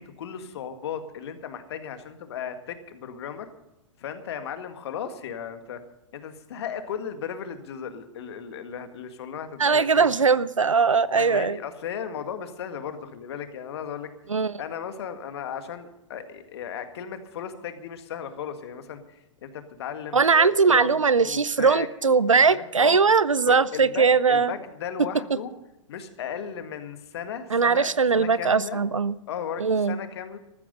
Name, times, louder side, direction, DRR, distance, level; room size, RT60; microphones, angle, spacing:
voice 1, 0.0-3.5 4.0-5.8 6.1-10.1 11.1-14.1 14.6-23.0 23.5-25.5 25.9-28.8 29.3-30.4, left 8 dB, 55° left, 8 dB, 1.9 m, -36 dB
voice 2, 9.6-11.6 14.3-14.6 20.1-24.5 27.5-29.2 29.6-30.0, right 5 dB, 85° right, 19 dB, 0.6 m, -20 dB
14.0 x 14.0 x 5.3 m, 0.93 s
figure-of-eight pair, 105°, 16 cm